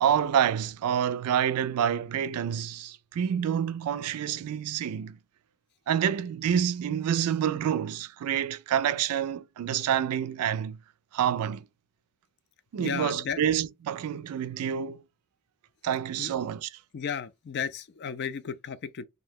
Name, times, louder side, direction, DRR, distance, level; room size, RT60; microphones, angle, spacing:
voice 1, 0.0-5.2 5.9-10.8 11.1-11.6 12.7-15.0 15.8-16.7, right 9 dB, 85° right, 0.3 m, -28 dB
voice 2, 12.8-13.4 16.2-16.3 16.9-19.1, left 7 dB, 50° left, 0.3 m, -34 dB
2.7 x 2.1 x 3.5 m
head